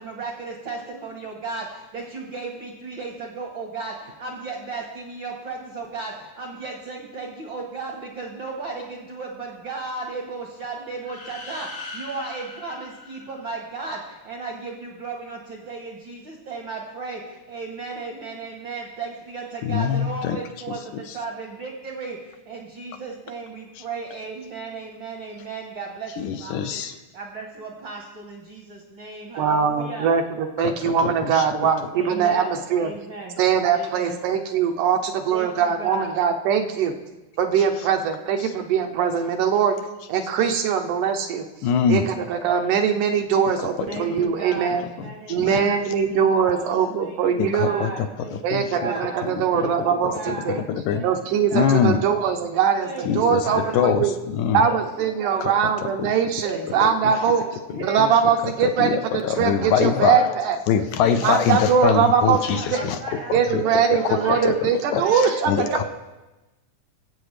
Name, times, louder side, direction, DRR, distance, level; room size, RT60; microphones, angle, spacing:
voice 1, 0.0-26.8 27.1-30.1 31.9-33.4 33.7-34.2 35.3-36.2 43.9-52.1 52.8-54.0 54.6-55.7 56.4-60.5 61.0-64.5 65.0-65.8, right 3 dB, 60° right, 0 dB, 1.3 m, -35 dB
sound 1, 11.0-13.9, left 3 dB, 60° left, 0.7 m, -40 dB
voice 2, 19.6-20.4 26.2-26.9 30.6-31.5 38.4-38.5 41.6-42.1 43.6-43.9 45.4-45.7 47.4-48.1 48.5-48.8 49.4-49.7 50.7-51.1 51.5-52.0 53.1-54.6 55.4-55.5 55.8-56.1 57.0-57.1 58.0-58.1 58.4-60.3 60.7-63.0 63.3-65.8, left 8 dB, 80° left, 8 dB, 1.9 m, -24 dB
voice 3, 29.4-32.9 33.4-36.9 37.4-39.8 40.1-41.4 41.9-44.8 45.3-47.9 48.4-50.6 51.0-52.9 53.2-54.1 54.5-57.4 57.8-60.6 61.2-62.9 63.3-65.8, right 7 dB, 80° right, 4 dB, 2.2 m, -22 dB
22.5 x 8.0 x 3.3 m, 1.1 s
omnidirectional pair, 3.7 m